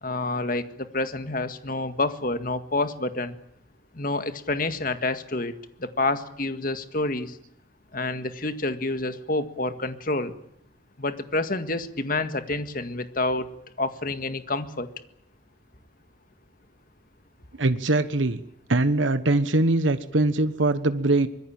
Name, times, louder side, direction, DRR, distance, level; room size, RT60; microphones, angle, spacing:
voice 1, 0.0-3.4 3.9-7.4 7.9-10.3 11.0-13.5 13.8-14.9, left 2 dB, 45° left, 9 dB, 1.9 m, -28 dB
voice 2, 17.6-18.4 18.7-21.3, right 2 dB, 75° right, 11 dB, 1.3 m, -22 dB
25.0 x 21.5 x 8.9 m, 0.70 s
head